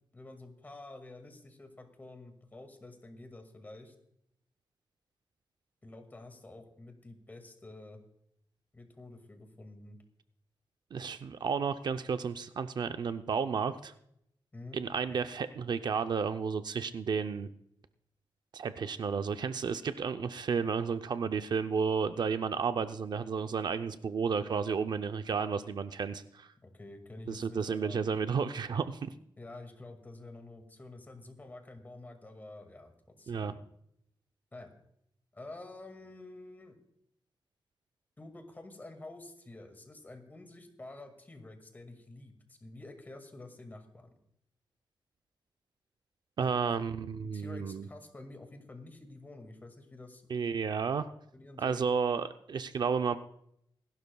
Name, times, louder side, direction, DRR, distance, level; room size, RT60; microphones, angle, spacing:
voice 1, 0.1-3.9 5.8-8.0 8.7-10.0 14.5-14.8 26.6-28.0 29.4-33.6 34.5-34.7 35.3-36.8 38.2-44.1 46.4-46.5 47.2-50.6 51.3-51.9, left 2 dB, 20° left, 5 dB, 2.0 m, -49 dB
voice 2, 10.9-13.9 14.7-17.5 18.5-26.5 27.3-29.1 33.3-33.5 46.4-47.9 50.3-51.1 51.6-53.2, right 6 dB, 60° right, 9 dB, 0.5 m, -32 dB
26.0 x 12.0 x 2.3 m, 0.74 s
wide cardioid pair, 145°, 8 cm